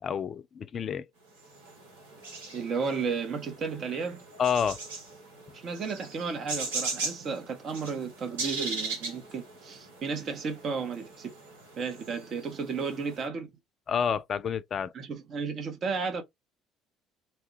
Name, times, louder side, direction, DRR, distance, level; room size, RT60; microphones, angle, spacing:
voice 1, 0.0-1.1 4.4-4.8 13.9-14.9, left 7 dB, 45° left, 0.4 m, -29 dB
sound 1, 1.4-13.3, right 3 dB, 80° right, 1.1 m, -39 dB
voice 2, 2.5-4.2 5.5-11.3 11.7-13.5 14.9-16.2, right 5 dB, 50° right, 0.9 m, -33 dB
2.8 x 2.2 x 3.2 m
hypercardioid pair, 55°, 0 cm